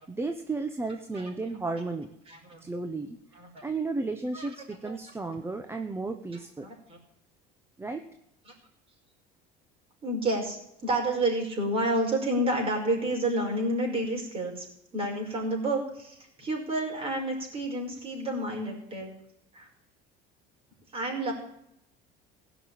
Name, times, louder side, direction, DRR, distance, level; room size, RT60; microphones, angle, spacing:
voice 1, 0.1-2.1 2.6-3.2 3.6-6.7 7.8-8.1, right 3 dB, 10° right, 6 dB, 1.0 m, -33 dB
voice 2, 2.3-2.6 3.3-3.6 4.3-4.5 4.8-5.0 6.6-7.0 8.5-8.6 10.0-14.7 14.9-19.1 19.5-19.7 20.9-21.3, right 1 dB, 30° right, 0 dB, 5.4 m, -30 dB
16.0 x 6.2 x 9.9 m, 0.79 s
cardioid pair, 125°, 20 cm